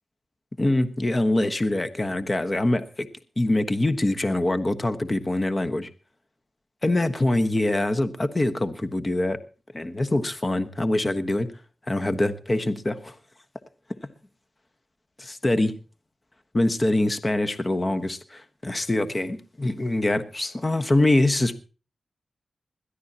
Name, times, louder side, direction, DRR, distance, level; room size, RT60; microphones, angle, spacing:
voice 1, 0.6-3.1 3.4-5.9 6.8-9.4 9.7-11.5 11.9-13.1 15.2-15.7 16.5-21.6, left 1 dB, 30° left, 1.3 m, -24 dB
21.0 x 13.0 x 2.9 m
cardioid pair, 75°, 0 cm